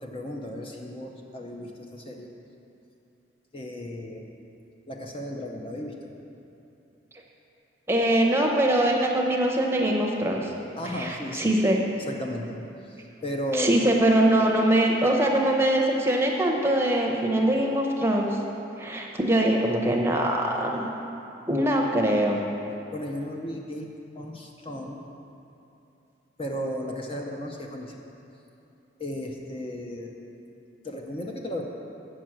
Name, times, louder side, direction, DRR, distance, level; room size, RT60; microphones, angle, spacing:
voice 1, 0.0-2.3 3.5-4.4 4.9-6.1 10.8-11.5 12.0-13.8 22.9-23.9 24.2-25.1 26.4-28.0 29.0-30.2 30.8-31.6, equal, 30° left, 1 dB, 0.6 m, -35 dB
voice 2, 7.9-10.5 11.0-11.8 13.5-18.4 18.8-20.8 21.5-22.4, right 1 dB, 15° right, 0 dB, 0.8 m, -23 dB
7.6 x 6.2 x 7.5 m, 2.8 s
head